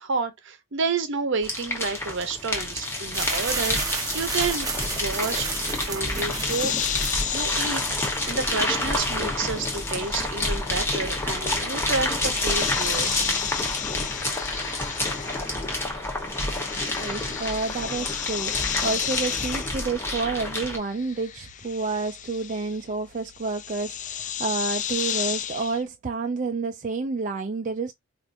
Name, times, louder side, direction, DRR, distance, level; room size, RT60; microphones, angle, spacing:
voice 1, 0.0-5.5 5.9-6.7 7.3-13.2, right 4 dB, 65° right, 0.8 m, -30 dB
sound 1, 1.4-20.8, left 1 dB, 15° left, 1.0 m, -28 dB
sound 2, 3.1-8.7, right 4 dB, 20° right, 0.8 m, -33 dB
sound 3, 6.1-15.8 16.1-25.8, left 10 dB, 40° left, 0.4 m, -33 dB
voice 2, 17.0-27.9, right 3 dB, 40° right, 0.4 m, -29 dB
4.6 x 2.5 x 2.5 m
head